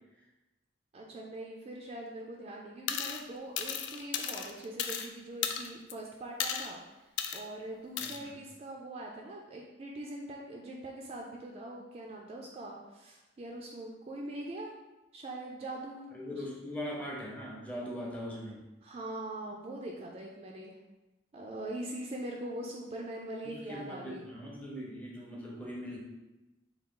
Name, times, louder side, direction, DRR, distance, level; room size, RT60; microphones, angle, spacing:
voice 1, 0.9-6.8 7.3-14.7 15.1-16.5 18.8-20.8 21.3-24.3, right 1 dB, 30° right, -1 dB, 0.3 m, -42 dB
sound 1, 2.9-3.2 3.6-5.1 5.4-5.9 6.4-6.7 7.2-7.4 8.0-8.2, left 8 dB, 65° left, 0.3 m, -34 dB
voice 2, 8.0-8.4 16.1-18.7 23.4-26.0, equal, 5° left, -4 dB, 0.7 m, -41 dB
3.7 x 2.3 x 3.7 m, 1.1 s
head